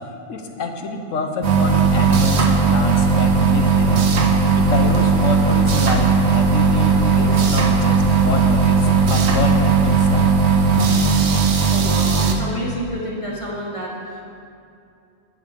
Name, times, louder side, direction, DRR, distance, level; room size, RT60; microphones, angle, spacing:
voice 1, 0.3-4.1 4.5-10.3, left 4 dB, 85° left, 4 dB, 1.3 m, -27 dB
sound 1, 1.4-12.3, right 5 dB, 60° right, 1.1 m, -17 dB
sound 2, 4.6-10.3, equal, 10° right, 1.5 m, -34 dB
voice 2, 11.5-14.2, equal, 25° left, -5 dB, 1.4 m, -29 dB
11.5 x 9.4 x 3.6 m, 2.5 s
omnidirectional pair, 1.3 m